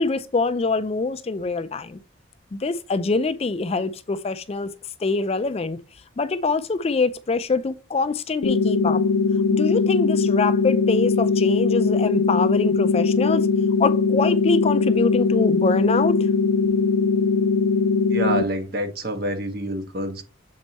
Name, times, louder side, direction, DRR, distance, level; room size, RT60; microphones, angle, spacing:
voice 1, 0.0-2.0 2.5-4.7 5.0-5.8 6.2-9.0 9.5-13.5 13.8-16.3, left 3 dB, 30° left, 0.3 m, -24 dB
sound 1, 8.4-18.4, left 4 dB, 90° left, 0.5 m, -20 dB
voice 2, 18.1-20.2, right 1 dB, 50° right, 1.3 m, -27 dB
7.5 x 4.4 x 4.1 m
head